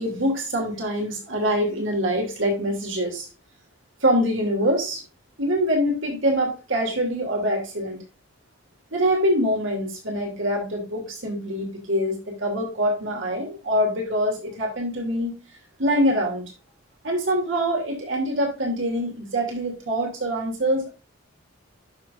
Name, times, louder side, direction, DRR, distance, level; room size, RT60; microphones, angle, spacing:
voice 1, 0.0-3.3 4.0-5.0 5.4-8.0 8.9-15.4 15.8-16.4 17.0-20.9, equal, 60° right, 1 dB, 2.7 m, -24 dB
11.5 x 6.1 x 2.5 m, 0.31 s
head